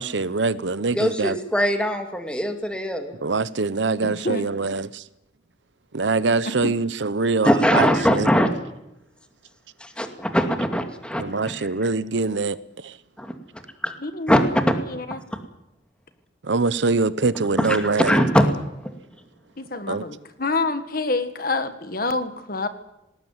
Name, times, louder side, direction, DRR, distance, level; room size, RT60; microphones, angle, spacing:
voice 1, 0.0-1.4 3.2-4.9 5.9-8.3 11.2-12.6 12.8-12.9 16.4-18.2 19.9-20.0, right 3 dB, 80° right, 0.8 m, -23 dB
voice 2, 0.9-3.2 7.4-8.5 9.8-11.7 13.2-13.3 13.8-13.9 14.3-14.4 17.6-18.5 18.8-18.9, equal, 5° left, 2.4 m, -21 dB
voice 3, 4.0-4.5 6.5-6.8 14.0-14.3 14.9-15.2 19.6-22.7, left 3 dB, 50° left, 1.6 m, -27 dB
19.5 x 18.0 x 9.6 m
head